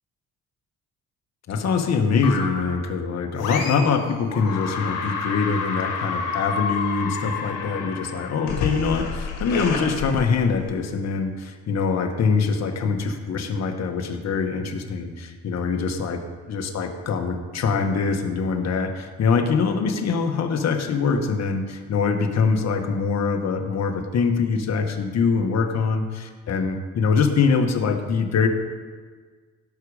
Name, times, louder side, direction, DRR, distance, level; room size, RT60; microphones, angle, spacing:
voice 1, 1.5-28.5, left 5 dB, 60° left, 5 dB, 1.4 m, -23 dB
sound 1, 2.2-2.8 3.4-4.0 4.3-10.8, left 5 dB, 85° left, 1.9 m, -30 dB
17.0 x 6.2 x 5.0 m, 1.5 s
cardioid pair, 90°, 30 cm